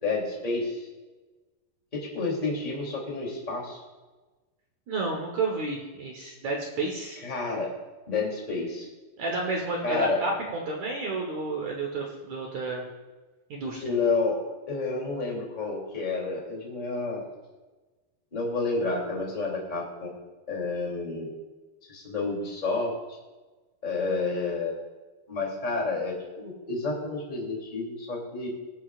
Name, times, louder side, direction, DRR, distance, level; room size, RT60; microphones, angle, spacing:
voice 1, 0.0-0.9 1.9-3.8 7.2-7.7 8.1-8.9 9.8-10.2 13.8-14.4 14.7-17.3 18.3-20.1 20.5-21.3 21.9-22.9 23.8-24.8 25.3-28.5, left 3 dB, 15° left, -3 dB, 2.4 m, -30 dB
voice 2, 4.9-7.2 9.2-12.9 13.5-13.9, right 3 dB, 60° right, 0 dB, 2.1 m, -31 dB
20.5 x 8.4 x 2.5 m, 1.2 s
omnidirectional pair, 4.5 m